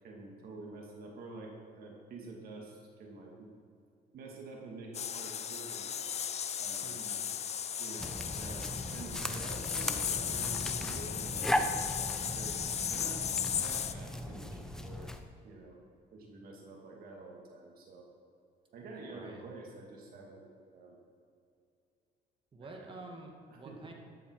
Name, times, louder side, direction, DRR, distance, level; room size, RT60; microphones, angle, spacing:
voice 1, 0.0-3.5 4.1-6.0 6.6-7.0 7.8-11.7 12.3-15.1 15.4-15.8 16.1-18.0 18.7-20.4 20.7-21.0 22.6-23.0 23.5-23.8, right 3 dB, 60° right, -1 dB, 2.8 m, -48 dB
sound 1, 4.9-13.9, left 8 dB, 40° left, 0.7 m, -36 dB
voice 2, 6.8-7.2 19.1-19.4 22.5-23.9, right 2 dB, 30° right, 2 dB, 2.2 m, -49 dB
sound 2, 8.0-15.2, left 1 dB, 5° left, 1.1 m, -37 dB
13.5 x 12.0 x 5.0 m, 2.5 s
cardioid pair, 110°, 17 cm